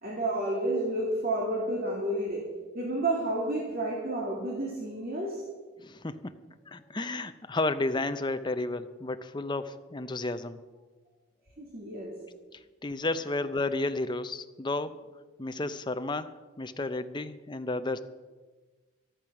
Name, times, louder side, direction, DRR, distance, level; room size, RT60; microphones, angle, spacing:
voice 1, 0.0-2.5 2.7-5.4 11.6-12.2, right 1 dB, 45° right, -2 dB, 2.2 m, -30 dB
voice 2, 5.8-6.4 6.7-10.6 12.8-14.9 15.4-16.3 16.6-18.0, left 2 dB, 20° left, 10 dB, 0.6 m, -32 dB
13.5 x 12.5 x 5.9 m, 1.3 s
head